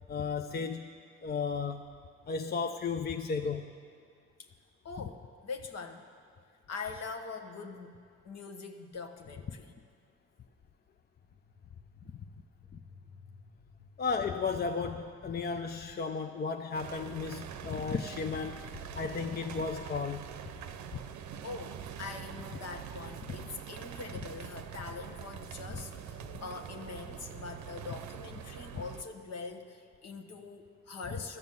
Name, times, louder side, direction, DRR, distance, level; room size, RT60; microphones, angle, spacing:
voice 1, 0.1-0.9 1.2-1.9 2.3-3.7 14.0-18.6 18.9-20.3, left 5 dB, 30° left, 6 dB, 0.6 m, -34 dB
voice 2, 4.8-6.0 6.7-8.0 8.2-9.7 12.0-12.3 21.4-31.4, left 4 dB, 55° left, 4 dB, 1.2 m, -43 dB
sound 1, 16.7-29.0, right 9 dB, 65° right, 0.7 m, -44 dB
13.0 x 6.9 x 7.8 m, 2.2 s
hypercardioid pair, 40°, 31 cm